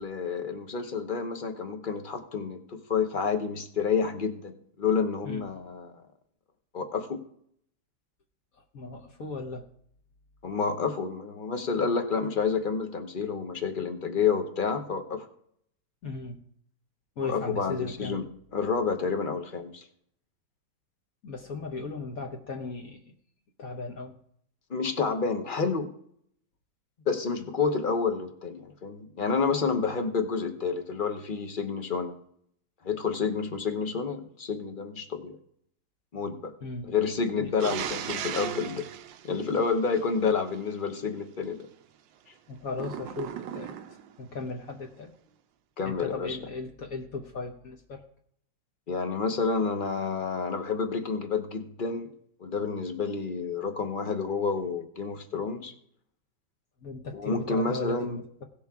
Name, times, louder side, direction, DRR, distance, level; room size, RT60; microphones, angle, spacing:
voice 1, 0.0-4.5 4.8-5.9 6.7-7.2 10.4-15.3 17.2-18.3 18.5-19.8 24.7-25.9 27.1-32.1 32.8-35.4 36.1-36.5 36.8-38.9 39.2-41.7 45.8-46.4 48.9-52.1 52.4-55.7 57.1-58.2, left 5 dB, 40° left, 6 dB, 0.8 m, -29 dB
voice 2, 8.7-9.6 16.0-16.4 17.2-18.2 21.2-23.0 23.6-24.2 36.6-36.9 37.4-37.5 42.5-43.8 44.2-45.1 45.8-48.0 56.8-58.4, left 3 dB, 55° left, 2 dB, 1.3 m, -37 dB
sound 1, 37.6-40.3 42.7-44.1, right 10 dB, 85° right, 1.4 m, -36 dB
17.5 x 6.7 x 3.6 m, 0.67 s
omnidirectional pair, 2.0 m